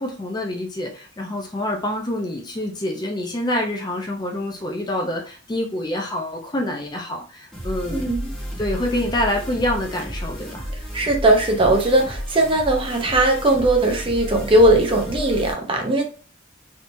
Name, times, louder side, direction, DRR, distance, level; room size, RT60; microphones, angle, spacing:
voice 1, 0.0-8.0 8.6-10.7, left 1 dB, 20° left, 1 dB, 0.5 m, -26 dB
sound 1, 7.5-15.5, equal, 5° left, 1.0 m, -32 dB
voice 2, 7.9-8.3 10.9-16.0, right 1 dB, 25° right, 2 dB, 0.6 m, -18 dB
3.6 x 2.8 x 2.6 m, 0.38 s
head